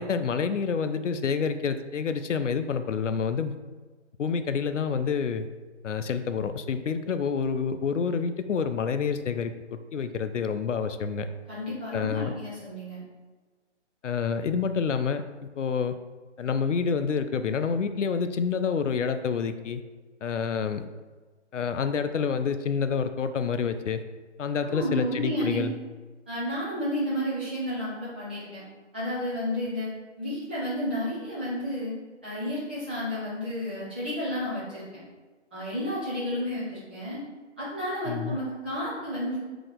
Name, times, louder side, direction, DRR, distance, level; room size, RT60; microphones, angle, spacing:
voice 1, 0.0-3.5 4.2-5.5 5.8-11.3 11.9-12.3 14.0-15.2 15.6-16.0 16.4-19.8 20.2-20.8 21.5-24.0 24.4-25.7 38.1-38.4, left 6 dB, 85° left, 10 dB, 0.5 m, -28 dB
voice 2, 11.5-13.0 24.7-25.7 26.3-28.6 28.9-29.9 30.2-31.9 32.2-34.8 35.5-37.2 37.6-39.4, equal, 10° right, -12 dB, 0.6 m, -31 dB
3.9 x 2.9 x 3.8 m, 1.3 s
figure-of-eight pair, 150°, 36 cm